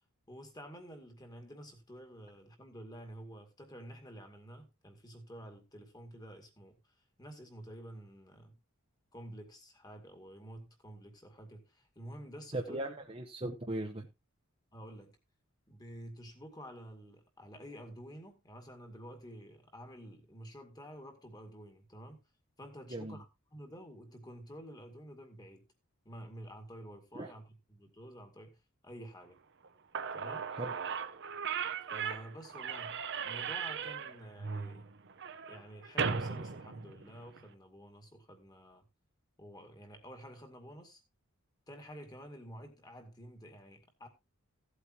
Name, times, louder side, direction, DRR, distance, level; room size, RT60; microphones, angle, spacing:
voice 1, 0.3-6.8 7.2-8.6 9.1-12.8 14.7-15.2 15.7-22.2 22.6-23.3 23.5-25.7 26.1-27.4 27.7-28.6 28.8-29.4 30.1-30.5 31.9-34.9 35.4-38.8 39.4-41.0 41.7-44.1, equal, 20° left, 2.1 m, -50 dB
voice 2, 12.5-14.1 22.9-23.2 27.1-27.3 30.5-30.7, right 1 dB, 25° right, 1.0 m, -38 dB
Slam / Squeak, 29.6-29.7 29.9-37.4, right 6 dB, 55° right, 0.8 m, -37 dB
16.0 x 8.2 x 2.9 m
head